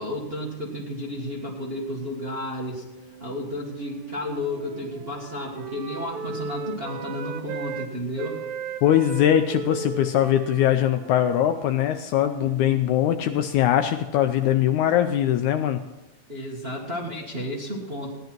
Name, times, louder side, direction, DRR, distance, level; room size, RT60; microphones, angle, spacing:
voice 1, 0.0-2.9 3.2-8.4 16.3-18.1, left 1 dB, 25° right, -4 dB, 1.3 m, -32 dB
Wind instrument woodwind instrument, 3.0-7.9 8.2-13.5, right 5 dB, 75° right, 2.2 m, -37 dB
voice 2, 8.8-15.8, left 11 dB, 75° left, 7 dB, 1.9 m, -21 dB
17.0 x 10.5 x 4.5 m, 1.0 s
omnidirectional pair, 3.7 m